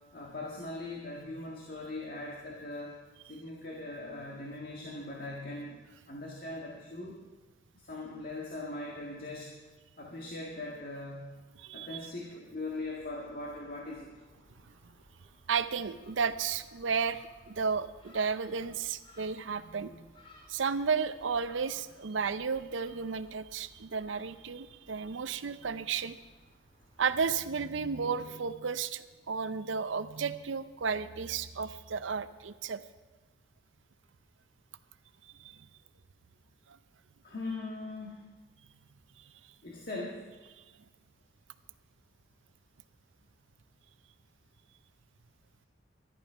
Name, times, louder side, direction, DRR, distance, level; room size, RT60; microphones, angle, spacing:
voice 1, 0.1-3.0 3.2-5.8 6.1-7.2 7.7-9.6 10.0-11.3 11.7-14.1 37.2-38.3 39.6-40.2, left 2 dB, 50° left, -2 dB, 1.7 m, -40 dB
voice 2, 11.6-12.1 14.6-14.9 15.5-20.1 20.5-26.2 27.0-32.8 35.2-35.7 36.7-36.8 39.2-39.3 40.6-40.7, right 5 dB, 85° right, 13 dB, 0.6 m, -33 dB
Gull seagull, 12.7-27.3, left 1 dB, 25° left, 2.2 m, -61 dB
13.5 x 11.0 x 5.6 m, 1.3 s
head